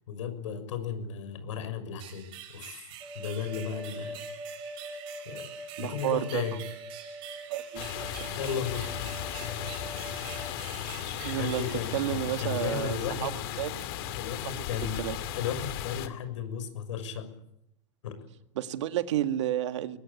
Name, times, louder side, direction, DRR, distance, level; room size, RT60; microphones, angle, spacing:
voice 1, 0.0-2.8 3.1-4.2 5.2-5.5 5.8-6.6 8.0-9.0 11.3-13.4 14.2-15.0 15.3-17.3 18.0-18.1, left 7 dB, 80° left, 9 dB, 6.4 m, -35 dB
sound 1, 2.0-12.7, right 11 dB, 35° right, 6.0 m, -46 dB
sound 2, 3.0-10.6, right 1 dB, 5° right, 4.0 m, -43 dB
voice 2, 5.8-6.4 7.5-7.9 10.9-11.7 11.9-13.3 13.6-13.8 14.4-14.5 15.0-15.2 18.6-20.0, right 12 dB, 70° right, 9 dB, 1.9 m, -31 dB
sound 3, 7.8-16.1, left 11 dB, 50° left, 2.6 m, -36 dB
22.5 x 21.0 x 8.5 m, 0.78 s
supercardioid pair, 165°, 16 cm